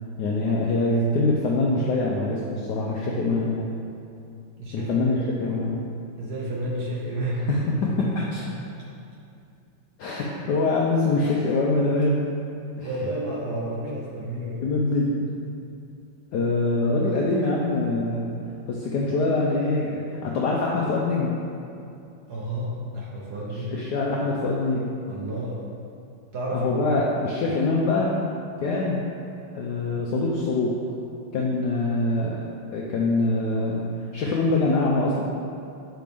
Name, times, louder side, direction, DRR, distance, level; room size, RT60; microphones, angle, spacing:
voice 1, 0.2-3.7 4.7-5.8 7.5-8.4 10.0-12.2 12.8-12.9 14.6-15.3 16.3-18.3 18.7-21.4 23.7-24.9 26.5-28.1 28.6-29.1 29.5-30.8 31.3-32.4 32.7-33.9 34.1-35.2, left 2 dB, 75° left, -3 dB, 0.9 m, -24 dB
voice 2, 4.6-5.2 6.2-7.5 7.8-8.1 8.4-8.5 10.4-10.6 12.8-14.7 22.3-23.8 25.1-25.7 26.3-27.1, right 1 dB, 60° right, -4 dB, 1.2 m, -31 dB
7.6 x 5.0 x 3.5 m, 2.6 s
omnidirectional pair, 2.4 m